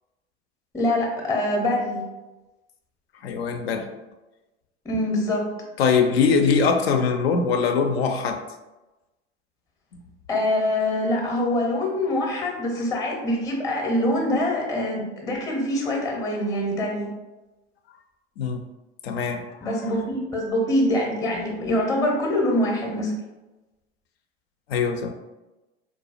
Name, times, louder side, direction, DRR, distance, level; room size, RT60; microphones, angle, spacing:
voice 1, 0.7-2.0 4.8-5.4 10.3-17.1 19.6-23.1, left 1 dB, 10° left, 0 dB, 0.7 m, -24 dB
voice 2, 3.2-3.9 5.8-8.4 18.4-18.6 19.0-19.4 24.7-25.1, left 5 dB, 65° left, 5 dB, 0.5 m, -22 dB
4.0 x 2.3 x 2.3 m, 1.1 s
figure-of-eight pair, 75°, 34 cm